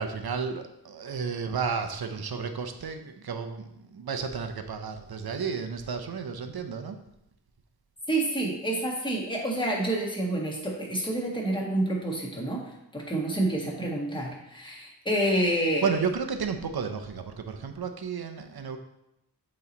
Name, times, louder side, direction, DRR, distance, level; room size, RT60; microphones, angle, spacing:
voice 1, 0.0-7.0 15.8-18.8, right 5 dB, 65° right, 6 dB, 0.7 m, -32 dB
voice 2, 8.1-12.6 12.9-15.9, right 1 dB, 10° left, -2 dB, 1.4 m, -28 dB
8.1 x 3.2 x 4.1 m, 0.84 s
wide cardioid pair, 85°, 41 cm